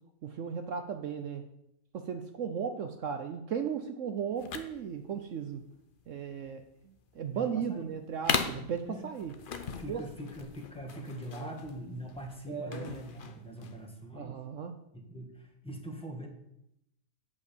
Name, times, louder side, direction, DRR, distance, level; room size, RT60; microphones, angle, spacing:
voice 1, 0.2-1.5 1.9-5.7 6.1-6.6 7.1-9.4 9.9-10.0 11.3-11.5 12.5-12.9 14.1-14.8, right 7 dB, 60° right, 6 dB, 0.8 m, -36 dB
sound 1, 4.4-13.8, left 6 dB, 55° left, 0.5 m, -38 dB
voice 2, 7.3-7.8 8.5-9.1 9.8-14.4 14.9-16.3, equal, 5° left, 2 dB, 1.3 m, -43 dB
8.3 x 5.4 x 6.9 m, 0.80 s
omnidirectional pair, 1.8 m